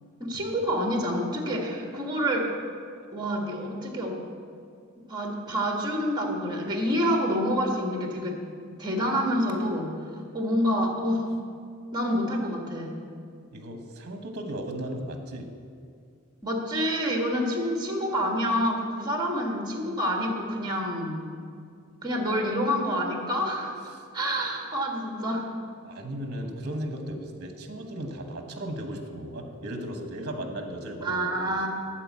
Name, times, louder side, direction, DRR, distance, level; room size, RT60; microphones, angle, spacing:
voice 1, 0.2-2.5 3.1-4.2 5.1-8.4 8.8-11.3 11.9-12.9 16.4-21.2 22.0-25.5 31.0-31.7, equal, 20° right, 1 dB, 1.5 m, -27 dB
voice 2, 13.5-15.5 23.9-24.0 25.8-31.7, right 1 dB, 50° right, 4 dB, 1.1 m, -36 dB
11.5 x 4.5 x 8.3 m, 2.3 s
head